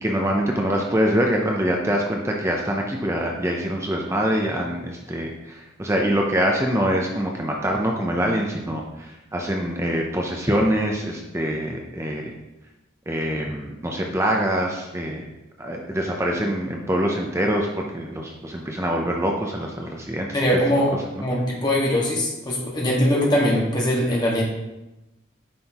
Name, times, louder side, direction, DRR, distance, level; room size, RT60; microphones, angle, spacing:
voice 1, 0.0-12.3 13.1-15.2 15.6-20.4, equal, 15° right, 0 dB, 0.6 m, -24 dB
voice 2, 20.3-20.9 21.2-24.4, equal, 20° left, -3 dB, 1.6 m, -21 dB
9.6 x 5.6 x 3.0 m, 1.0 s
head